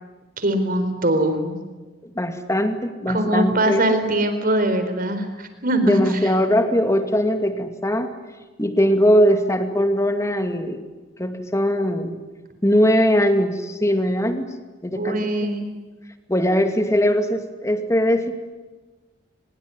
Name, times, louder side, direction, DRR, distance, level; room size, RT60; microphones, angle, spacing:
voice 1, 0.4-1.6 3.1-6.0 14.9-15.6, right 1 dB, 45° right, 9 dB, 4.3 m, -22 dB
voice 2, 2.2-3.8 5.8-8.1 8.6-10.8 11.2-12.2 12.6-14.5 14.8-15.3 16.3-18.3, equal, 15° left, 7 dB, 2.4 m, -20 dB
24.0 x 21.5 x 10.0 m, 1.2 s
head